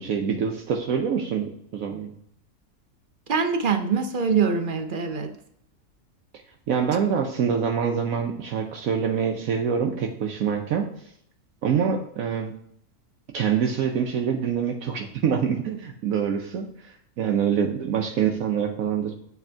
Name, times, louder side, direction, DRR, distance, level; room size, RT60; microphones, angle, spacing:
voice 1, 0.0-2.1 6.7-10.9 11.6-12.5 13.3-19.1, right 7 dB, 70° right, 2 dB, 1.1 m, -25 dB
voice 2, 3.3-5.3, right 5 dB, 50° right, 6 dB, 0.6 m, -24 dB
7.4 x 3.5 x 4.4 m, 0.70 s
omnidirectional pair, 1.5 m